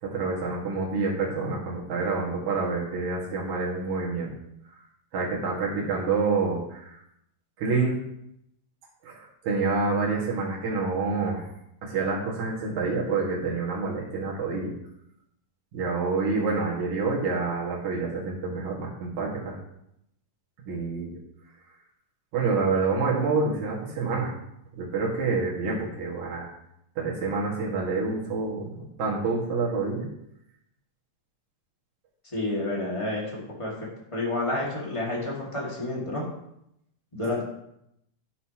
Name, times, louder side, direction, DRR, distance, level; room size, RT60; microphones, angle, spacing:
voice 1, 0.0-4.3 5.1-7.0 7.6-8.0 9.0-11.5 11.8-14.7 15.7-19.6 20.6-21.2 22.3-24.3 24.8-26.5 27.0-28.7 29.0-30.1, right 4 dB, 65° right, -4 dB, 3.1 m, -27 dB
voice 2, 32.3-33.9 34.1-36.2 37.1-37.4, left 2 dB, 15° left, -4 dB, 1.3 m, -29 dB
11.5 x 6.7 x 3.0 m, 0.79 s
omnidirectional pair, 3.8 m